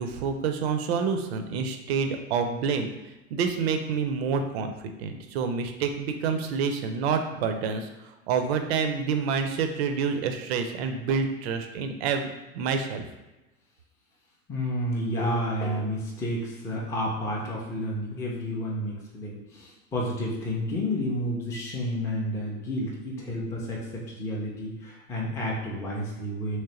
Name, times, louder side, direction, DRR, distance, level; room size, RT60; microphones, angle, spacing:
voice 1, 0.0-2.9 3.3-7.9 8.3-12.3 12.5-13.0, right 5 dB, 50° right, 6 dB, 0.5 m, -28 dB
voice 2, 14.5-26.6, equal, 5° left, -3 dB, 0.4 m, -30 dB
sound 1, 15.2-15.8, equal, 90° left, 0.8 m, -35 dB
3.2 x 3.1 x 2.8 m, 1.1 s
figure-of-eight pair, 85°, 43 cm